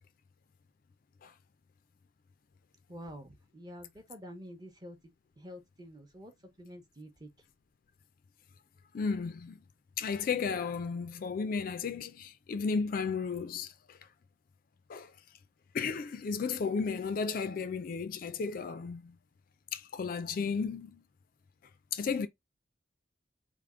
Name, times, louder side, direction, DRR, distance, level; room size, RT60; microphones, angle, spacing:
voice 1, 2.9-5.0 5.4-6.3 6.6-7.3, equal, 20° right, 0.8 m, -48 dB
voice 2, 8.9-9.6 10.0-14.0 14.9-15.1 15.7-19.1 19.7-21.0 21.9-22.3, left 5 dB, 50° left, 0.3 m, -34 dB
3.4 x 2.0 x 3.6 m
head